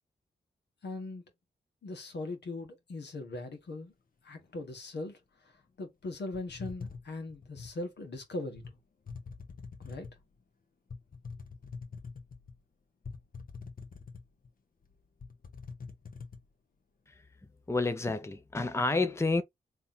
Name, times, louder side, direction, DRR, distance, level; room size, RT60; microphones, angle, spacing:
voice 1, 0.8-1.3 1.8-3.9 4.2-8.8 9.8-10.1, left 2 dB, 70° left, 1.5 m, -40 dB
sound 1, 6.3-7.8 8.6-8.7 9.1-10.2 10.9-12.6 13.0-14.5 14.8-14.9 15.2-16.4, left 4 dB, 55° left, 1.1 m, -44 dB
voice 2, 17.7-19.4, left 3 dB, 15° left, 0.6 m, -29 dB
3.4 x 2.8 x 4.0 m
cardioid pair, 45°, 18 cm